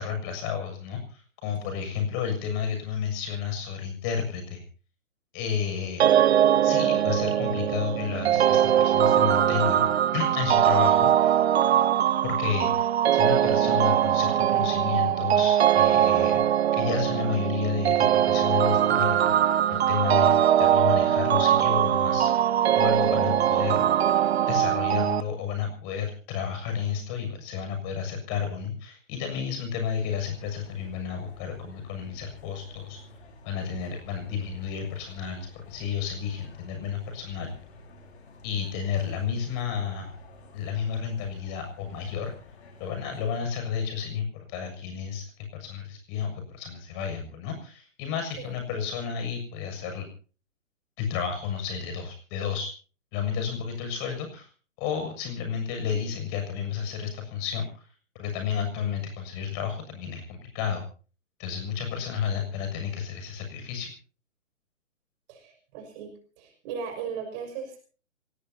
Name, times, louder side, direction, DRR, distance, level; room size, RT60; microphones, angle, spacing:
voice 1, 0.0-4.6 5.3-6.1 6.6-9.9 10.1-11.3 12.2-16.4 16.7-19.3 19.7-20.3 20.6-22.3 22.8-23.9 24.5-33.0 33.4-37.5 38.4-40.1 40.5-42.3 42.8-50.1 51.0-52.7 53.1-54.5 54.8-57.8 58.2-60.8 61.4-63.9, left 7 dB, 30° left, 6 dB, 7.1 m, -31 dB
sound 1, 6.0-25.2, right 10 dB, 55° right, 0.8 m, -22 dB
sound 2, 30.1-43.4, left 2 dB, 55° left, 5.2 m, -51 dB
voice 2, 65.3-67.8, right 6 dB, 35° right, 4 dB, 6.0 m, -37 dB
27.5 x 18.5 x 2.8 m, 0.38 s
hypercardioid pair, 130°, 39 cm